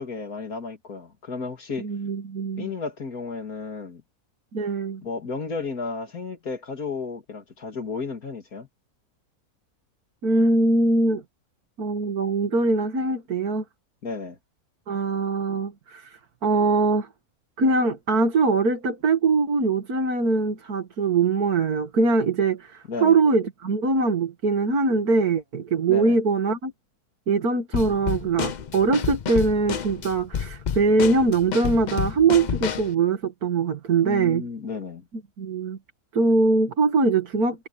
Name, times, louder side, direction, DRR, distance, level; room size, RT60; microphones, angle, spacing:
voice 1, 0.0-1.9 2.6-4.0 5.0-8.7 14.0-14.4 22.9-23.2 25.9-26.2 34.0-35.1, left 4 dB, 75° left, 3.0 m, -33 dB
voice 2, 1.8-2.7 4.5-5.0 10.2-11.2 11.8-13.6 14.9-17.1 17.6-26.7 27.3-34.4 35.4-35.8 36.1-37.7, right 3 dB, 85° right, 2.4 m, -22 dB
Drum kit / Snare drum, 27.7-32.9, left 7 dB, 55° left, 0.5 m, -30 dB
omnidirectional pair, 1.6 m